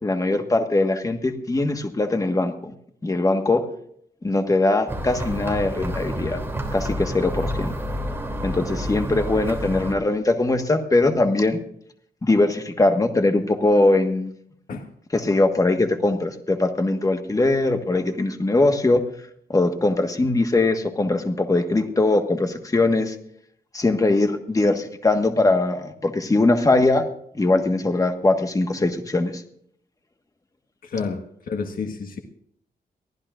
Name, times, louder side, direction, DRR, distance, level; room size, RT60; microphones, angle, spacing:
voice 1, 0.0-2.7 3.0-3.6 4.2-6.4 6.7-7.7 8.4-11.6 12.2-14.3 15.1-19.0 19.5-23.1 23.7-27.1 27.3-29.4, left 2 dB, 20° left, 6 dB, 1.5 m, -21 dB
sound 1, 4.9-10.0, equal, 15° right, 3.0 m, -29 dB
voice 2, 30.8-31.2 31.5-32.2, left 5 dB, 60° left, 4 dB, 1.6 m, -29 dB
23.5 x 15.0 x 2.5 m, 0.67 s
wide cardioid pair, 115°, 16 cm